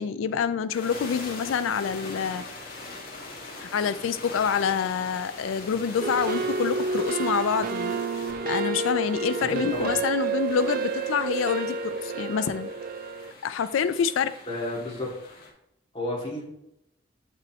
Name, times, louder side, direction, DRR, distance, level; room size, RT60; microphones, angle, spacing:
voice 1, 0.0-2.4 3.6-12.7 13.4-14.3, left 6 dB, 85° left, 12 dB, 0.3 m, -27 dB
sound 1, 0.7-15.5, left 2 dB, 50° left, 1.8 m, -42 dB
sound 2, 6.0-13.3, right 4 dB, 45° right, 0.3 m, -30 dB
voice 2, 9.5-9.9 14.5-15.3 15.9-16.5, left 1 dB, 25° left, -5 dB, 2.3 m, -32 dB
7.9 x 5.5 x 3.1 m, 0.79 s
head